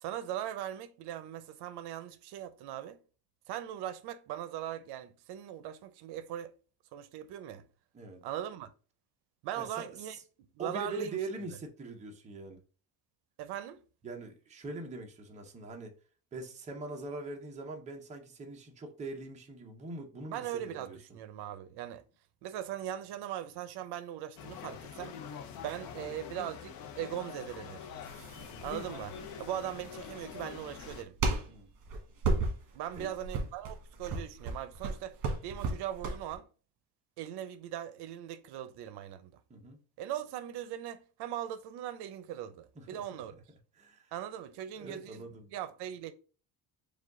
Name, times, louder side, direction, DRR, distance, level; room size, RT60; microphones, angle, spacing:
voice 1, 0.0-3.0 3.5-6.5 6.9-7.6 8.2-8.7 9.4-10.2 10.6-11.2 13.4-13.8 20.3-22.0 22.4-25.2 25.6-27.9 28.6-31.2 32.7-35.2 35.4-36.5 37.2-39.4 40.0-43.4 44.1-46.1, right 11 dB, 80° right, 0.6 m, -40 dB
voice 2, 9.6-10.2 10.6-12.6 14.0-15.9 16.3-21.2 28.4-28.6 31.5-31.7 32.9-33.1 39.5-39.8 42.8-43.4 43.7-44.1 44.7-45.5, right 3 dB, 20° right, 0.6 m, -43 dB
sound 1, 24.4-31.0, left 8 dB, 60° left, 0.6 m, -45 dB
sound 2, 28.0-36.4, right 3 dB, 55° right, 1.3 m, -35 dB
4.9 x 2.3 x 3.7 m
cardioid pair, 170°, 40 cm